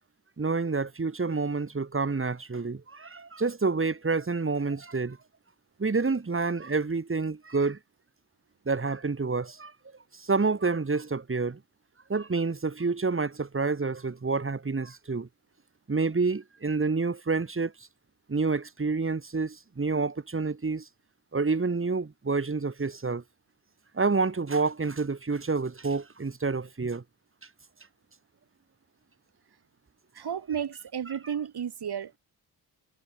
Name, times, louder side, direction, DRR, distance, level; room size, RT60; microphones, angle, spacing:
voice 1, 0.4-5.2 5.8-7.8 8.7-9.7 10.1-11.6 12.1-15.3 15.9-17.7 18.3-20.9 21.3-23.2 23.9-27.0, right 4 dB, 30° right, 7.8 m, -28 dB
voice 2, 30.1-32.1, right 8 dB, 65° right, 6.6 m, -33 dB
cardioid pair, 100°, 41 cm